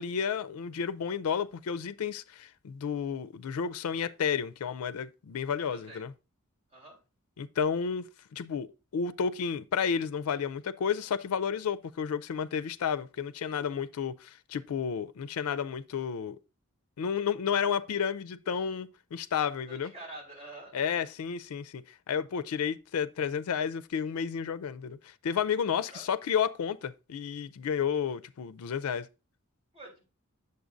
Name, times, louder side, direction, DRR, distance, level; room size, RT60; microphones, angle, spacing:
voice 1, 0.0-6.1 7.4-8.1 8.3-16.4 17.0-19.9 20.7-21.8 22.1-29.1, left 7 dB, 85° left, 0.4 m, -31 dB
voice 2, 5.7-6.0 6.7-7.0 19.7-21.1 25.9-26.0 29.7-30.0, right 2 dB, 30° right, 3.7 m, -47 dB
8.1 x 6.6 x 2.5 m
head